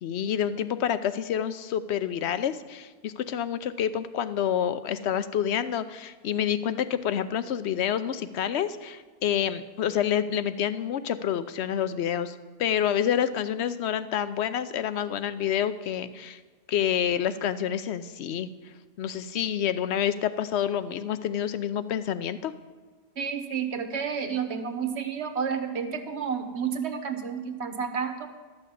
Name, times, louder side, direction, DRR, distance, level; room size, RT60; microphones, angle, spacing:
voice 1, 0.0-16.4 16.7-18.5 19.0-22.5, left 9 dB, 85° left, 13 dB, 0.9 m, -28 dB
voice 2, 23.2-28.3, right 6 dB, 85° right, 8 dB, 1.3 m, -30 dB
12.5 x 6.6 x 8.4 m, 1.4 s
omnidirectional pair, 1.1 m